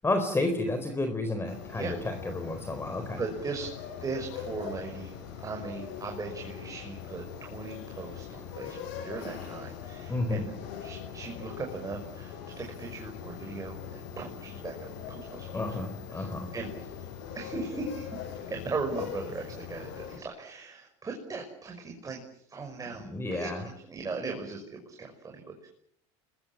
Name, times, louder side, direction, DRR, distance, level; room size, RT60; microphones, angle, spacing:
voice 1, 0.0-3.2 10.1-10.5 15.5-16.5 23.1-23.6, left 2 dB, 15° left, 7 dB, 4.1 m, -31 dB
sound 1, 1.5-20.2, left 8 dB, 75° left, 7.4 m, -42 dB
voice 2, 3.2-3.7 4.0-5.2 5.4-10.5 10.8-15.8 16.1-17.1 17.3-25.7, right 4 dB, 20° right, 3 dB, 6.1 m, -38 dB
28.0 x 22.0 x 7.3 m, 0.71 s
supercardioid pair, 105°, 15 cm